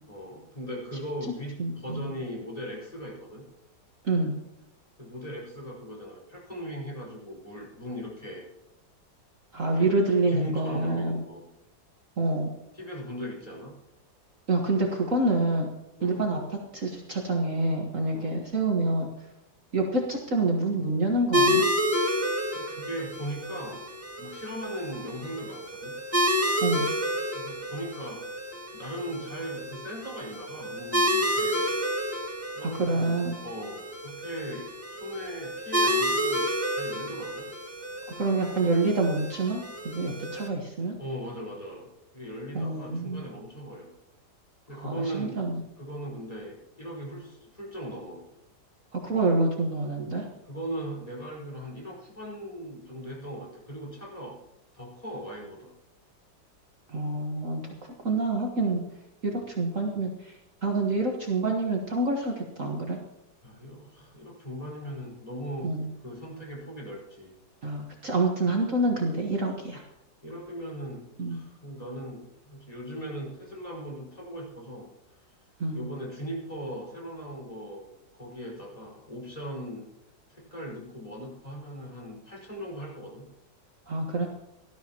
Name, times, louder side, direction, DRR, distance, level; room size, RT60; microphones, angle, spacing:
voice 1, 0.1-3.4 5.0-8.4 9.7-9.9 10.3-11.5 12.7-13.7 16.0-16.2 18.1-18.4 21.9-23.8 24.2-25.9 27.3-31.8 32.5-33.1 33.4-37.5 41.0-41.9 42.1-43.9 44.7-45.5 45.8-48.2 50.5-54.4 54.7-55.7 59.2-59.4 63.4-65.7 66.0-67.3 70.2-74.9 75.7-77.9 78.2-79.8 80.3-83.3, equal, 20° left, -4 dB, 5.0 m, -39 dB
voice 2, 1.6-2.1 4.0-4.4 9.5-11.2 12.2-12.5 14.5-15.7 16.0-19.1 19.7-21.7 26.6-26.9 32.6-33.3 38.2-41.0 42.5-43.2 44.7-45.6 48.9-50.3 56.9-57.7 58.0-58.8 59.2-63.0 65.6-65.9 67.6-69.8 71.2-71.4 75.6-75.8 83.9-84.3, right 2 dB, 45° right, -1 dB, 1.8 m, -27 dB
sound 1, 21.3-40.5, equal, 10° right, 1.7 m, -30 dB
19.0 x 13.0 x 3.0 m, 0.89 s
omnidirectional pair, 2.0 m